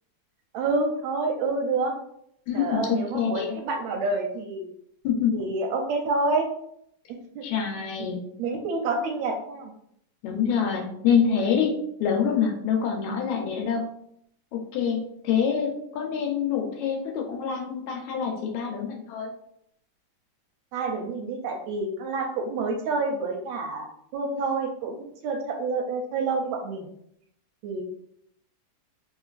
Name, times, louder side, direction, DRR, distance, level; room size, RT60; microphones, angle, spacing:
voice 1, 0.5-1.9 2.5-4.7 5.3-6.5 7.4-7.5 8.0-9.7 13.1-13.2 20.7-23.9 24.1-26.9 27.6-27.8, right 3 dB, 75° right, 2 dB, 1.7 m, -28 dB
voice 2, 2.5-3.5 5.0-5.4 7.4-8.3 10.2-13.9 14.5-19.3, left 7 dB, 75° left, 1 dB, 2.0 m, -26 dB
3.8 x 3.7 x 2.4 m, 0.72 s
omnidirectional pair, 3.4 m